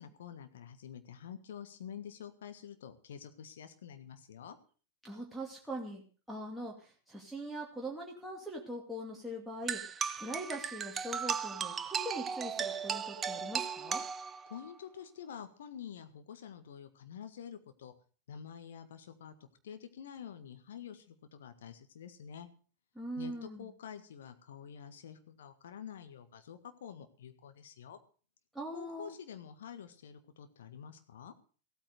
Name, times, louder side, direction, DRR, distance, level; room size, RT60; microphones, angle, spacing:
voice 1, 0.0-4.6 14.5-17.9 18.3-22.5 23.2-28.0 28.7-31.3, left 8 dB, 60° left, 9 dB, 1.7 m, -48 dB
voice 2, 5.0-6.0 6.3-9.8 10.2-14.0 23.0-23.7 28.5-29.1, right 1 dB, ahead, -3 dB, 2.5 m, -42 dB
sound 1, 9.7-14.7, right 7 dB, 20° right, 0.8 m, -36 dB
15.5 x 9.0 x 6.6 m, 0.39 s
figure-of-eight pair, 90°, 0 cm